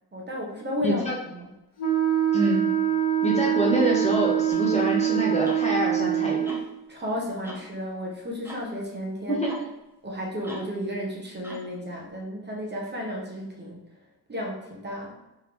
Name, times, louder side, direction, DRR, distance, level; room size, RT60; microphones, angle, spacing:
voice 1, 0.1-1.0 1.3-1.5 6.9-9.4 10.0-13.8 14.3-15.1, left 1 dB, 25° right, -3 dB, 1.0 m, -33 dB
voice 2, 0.8-1.1 2.3-2.7 3.2-6.4 9.3-9.5, right 1 dB, 15° left, -4 dB, 1.0 m, -26 dB
Wind instrument woodwind instrument, 1.8-6.7, right 10 dB, 80° left, 1.0 m, -24 dB
sound 1, 4.5-4.7 5.4-5.7 6.4-6.7 7.4-7.7 8.4-8.7 9.4-9.7 10.4-10.8 11.4-11.7, right 1 dB, 5° right, 0.7 m, -41 dB
3.6 x 3.4 x 3.0 m, 0.95 s
cardioid pair, 110°, 40 cm